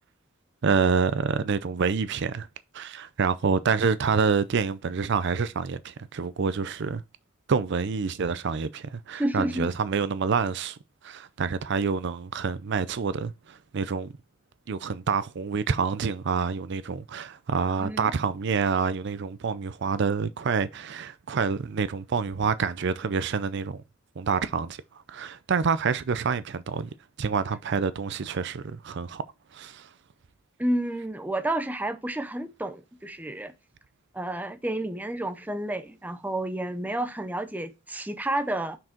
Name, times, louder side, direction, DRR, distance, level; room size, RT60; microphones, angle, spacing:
voice 1, 0.6-2.5 2.7-7.0 7.5-10.8 11.0-14.1 14.7-23.8 24.2-24.8 25.1-26.9 27.2-29.2 29.5-29.9, right 5 dB, 60° right, 0.5 m, -27 dB
voice 2, 9.2-9.7 17.8-18.1 30.6-33.5 34.1-38.8, right 1 dB, 10° right, 0.6 m, -30 dB
6.1 x 4.7 x 4.4 m
head